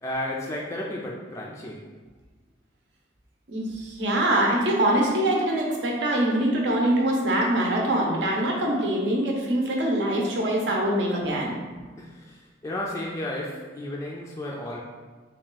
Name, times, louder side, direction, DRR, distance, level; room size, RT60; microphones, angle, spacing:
voice 1, 0.0-1.9 12.0-14.8, left 1 dB, 15° left, -3 dB, 0.3 m, -33 dB
voice 2, 3.5-11.5, right 1 dB, 70° right, -1 dB, 0.7 m, -24 dB
3.5 x 2.4 x 3.8 m, 1.4 s
head